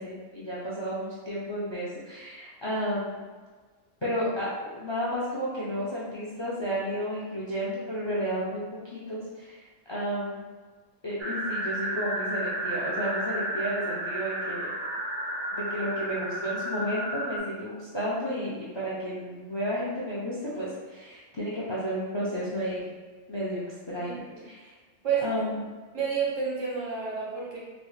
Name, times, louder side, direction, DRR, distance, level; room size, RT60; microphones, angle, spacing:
voice 1, 0.0-3.2 4.0-8.6 8.9-10.4 11.0-14.7 15.5-22.9 23.3-23.6 23.9-24.7 25.2-25.7, equal, 45° left, -7 dB, 0.3 m, -32 dB
sound 1, 11.2-17.4, right 1 dB, 40° right, 0.4 m, -32 dB
voice 2, 24.0-24.4 25.0-25.2 25.9-27.6, right 6 dB, 85° right, -6 dB, 1.4 m, -30 dB
4.0 x 2.0 x 3.1 m, 1.4 s
omnidirectional pair, 1.3 m